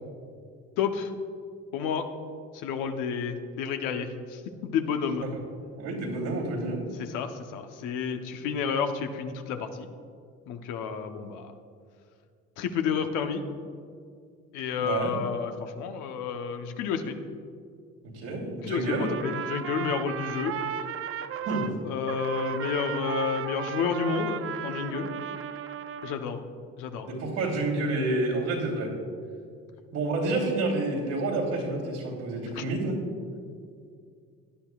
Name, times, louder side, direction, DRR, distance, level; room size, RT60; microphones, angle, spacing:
voice 1, 0.8-1.1 1.7-2.1 2.5-5.3 7.0-9.9 10.5-11.5 12.6-13.4 14.5-17.2 18.6-20.6 21.8-25.1 26.0-26.4 26.8-27.1 32.5-32.6, left 6 dB, 80° left, 7 dB, 0.9 m, -30 dB
voice 2, 5.8-6.8 14.8-15.1 18.0-19.1 21.4-21.7 27.1-29.0 29.9-33.0, right 2 dB, 85° right, -4 dB, 2.8 m, -29 dB
Trumpet, 18.8-21.7 22.1-26.2, right 8 dB, 45° right, 0.5 m, -35 dB
17.0 x 10.0 x 2.4 m, 2.3 s
supercardioid pair, 80°, 30 cm